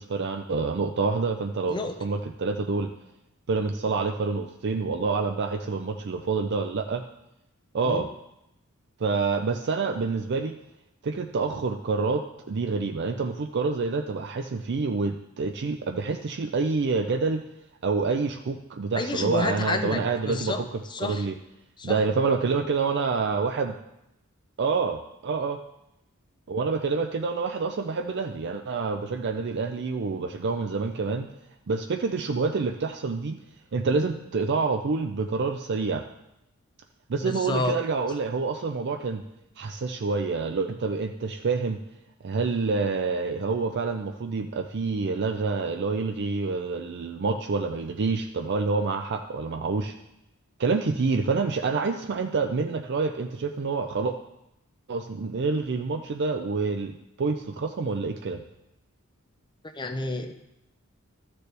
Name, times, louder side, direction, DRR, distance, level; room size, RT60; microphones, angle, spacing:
voice 1, 0.0-2.9 3.5-7.0 7.7-8.1 9.0-10.5 11.0-17.4 17.8-20.5 21.0-21.4 21.8-23.8 24.6-25.6 26.5-31.3 31.7-33.4 33.7-36.0 37.1-39.2 39.6-41.8 42.2-49.9 50.6-54.1 54.9-58.4, right 4 dB, 55° right, 5 dB, 0.5 m, -27 dB
voice 2, 18.9-21.3 21.8-22.0 37.2-37.8 59.8-60.3, left 2 dB, 20° left, 7 dB, 0.6 m, -30 dB
13.0 x 6.8 x 3.3 m, 0.85 s
head